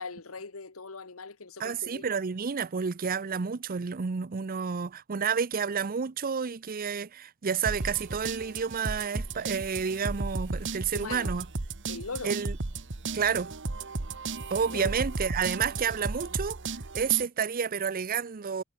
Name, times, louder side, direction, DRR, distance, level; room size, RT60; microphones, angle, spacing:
voice 1, 0.0-2.0 10.9-11.3 11.9-12.3 14.5-14.9, left 4 dB, 75° left, 1.4 m, -40 dB
voice 2, 1.6-11.5 12.2-12.6 13.1-13.5 14.5-16.6 16.9-18.6, right 6 dB, 40° right, 0.6 m, -30 dB
sound 1, 7.7-17.3, right 3 dB, 60° right, 1.4 m, -35 dB
head